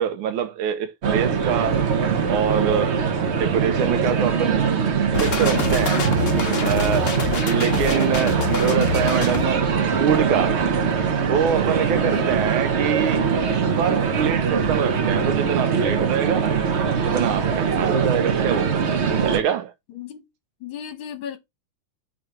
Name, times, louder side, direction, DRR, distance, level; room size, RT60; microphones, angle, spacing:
voice 1, 0.0-1.9 2.3-2.9 3.3-4.6 5.2-6.1 6.6-7.1 7.4-9.7 10.0-10.7 11.1-13.3 13.8-16.6 17.0-18.9 19.2-19.7, right 8 dB, 85° right, 1.5 m, -25 dB
sound 1, 1.0-19.4, right 6 dB, 55° right, 0.8 m, -22 dB
sound 2, 5.1-9.4, left 5 dB, 50° left, 1.1 m, -26 dB
voice 2, 11.9-12.3 19.9-20.3 20.6-21.4, left 9 dB, 70° left, 1.7 m, -35 dB
5.1 x 4.0 x 5.7 m
omnidirectional pair, 2.3 m